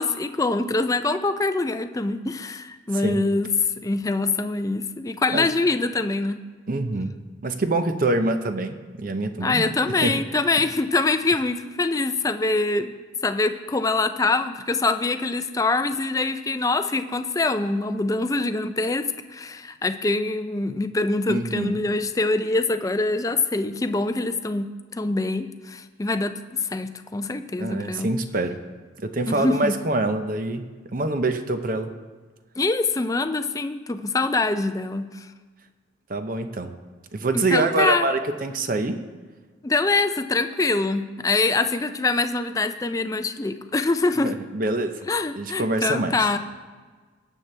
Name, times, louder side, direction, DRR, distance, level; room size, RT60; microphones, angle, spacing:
voice 1, 0.0-3.5 3.8-6.4 9.4-12.9 13.2-28.1 29.3-29.8 32.6-35.3 37.3-38.1 39.6-44.3 45.1-46.4, left 3 dB, 20° left, 9 dB, 0.4 m, -24 dB
voice 2, 6.7-7.2 7.4-9.6 10.0-10.1 21.3-21.8 27.6-28.6 29.0-30.7 30.9-31.9 36.1-36.7 37.1-39.0 44.2-44.9 45.3-46.2, right 2 dB, 45° right, 8 dB, 0.7 m, -25 dB
19.0 x 7.4 x 3.3 m, 1.4 s
head